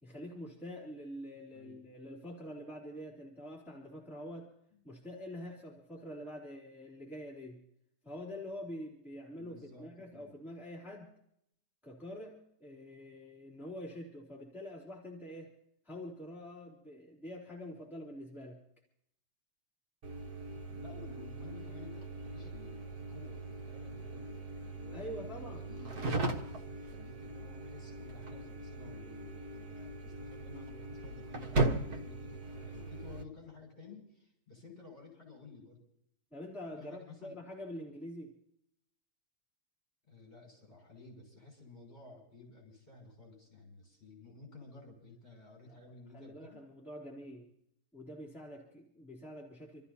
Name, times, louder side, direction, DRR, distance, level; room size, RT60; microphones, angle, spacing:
voice 1, 0.0-4.5 4.8-7.6 8.0-11.1 11.8-15.5 15.8-18.6 24.9-25.8 36.3-38.3 45.7-45.8 46.1-47.5 47.9-49.9, equal, ahead, -6 dB, 2.9 m, -46 dB
voice 2, 9.4-10.3 20.6-26.2 26.7-35.8 36.8-37.3 40.1-46.6, left 3 dB, 35° left, 0 dB, 6.3 m, -54 dB
sound 1, 20.0-33.2, right 2 dB, 60° right, 1.8 m, -39 dB
28.5 x 13.5 x 2.8 m, 0.73 s
omnidirectional pair, 1.8 m